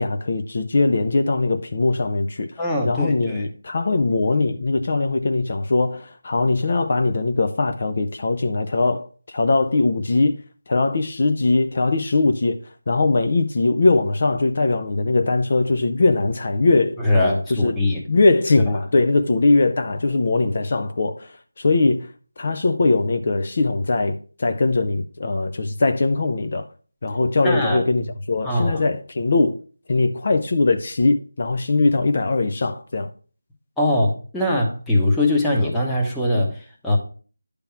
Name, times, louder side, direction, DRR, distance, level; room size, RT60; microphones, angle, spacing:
voice 1, 0.0-12.6 12.9-17.8 18.1-26.7 27.0-29.6 29.9-33.1, left 3 dB, 45° left, 0.6 m, -21 dB
voice 2, 2.6-3.4 17.0-18.0 27.4-27.8 28.4-28.8 33.8-37.0, left 1 dB, 5° left, 1.0 m, -21 dB
10.5 x 3.5 x 5.7 m
figure-of-eight pair, 165°, 0 cm